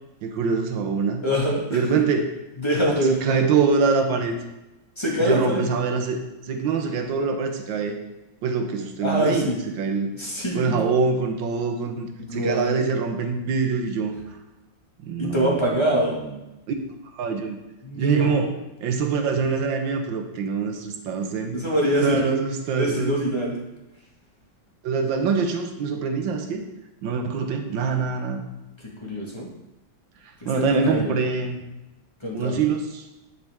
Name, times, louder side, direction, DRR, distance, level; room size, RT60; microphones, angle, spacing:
voice 1, 0.2-1.2 1.7-2.3 3.1-4.3 5.2-7.9 8.4-9.5 9.8-10.1 10.5-14.1 15.0-15.6 16.7-16.8 17.1-17.6 17.9-18.5 18.8-21.6 22.0-23.2 24.8-26.6 27.0-28.4 30.4-31.6 32.3-33.0, right 5 dB, 75° right, 5 dB, 1.6 m, -24 dB
voice 2, 1.2-2.0 2.6-3.4 5.0-5.7 9.0-9.6 10.2-10.8 12.3-12.7 15.2-16.2 17.8-18.5 21.5-22.3 22.7-23.6 29.0-29.5 30.4-31.1 32.2-32.6, right 1 dB, 15° left, -4 dB, 1.5 m, -24 dB
10.5 x 5.3 x 3.6 m, 0.97 s
omnidirectional pair, 2.1 m